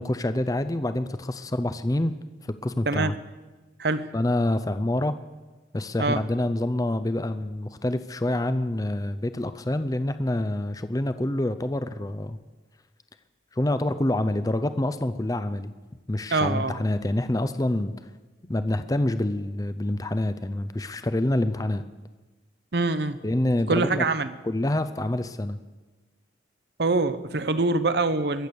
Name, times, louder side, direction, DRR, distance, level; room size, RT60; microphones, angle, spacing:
voice 1, 0.0-2.1 2.5-3.1 4.1-5.1 5.7-12.4 13.5-15.7 16.1-17.9 18.4-21.8 23.2-24.1 24.4-25.6, left 1 dB, 20° left, 11 dB, 0.5 m, -26 dB
voice 2, 3.8-4.1 6.0-6.2 16.3-16.8 22.7-23.2 23.7-24.3 26.8-28.5, right 3 dB, 60° right, 12 dB, 0.8 m, -24 dB
22.5 x 8.1 x 6.9 m, 1.2 s
head